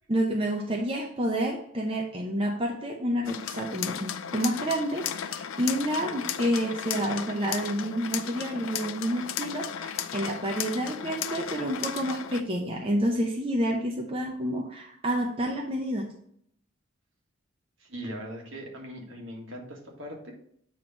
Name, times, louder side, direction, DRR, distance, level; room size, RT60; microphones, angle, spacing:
voice 1, 0.1-16.1, equal, 25° right, 1 dB, 0.6 m, -29 dB
sound 1, 3.3-12.4, left 9 dB, 85° left, 0.5 m, -35 dB
voice 2, 17.8-20.3, equal, 70° right, 0 dB, 1.7 m, -40 dB
8.1 x 3.1 x 5.3 m, 0.68 s
head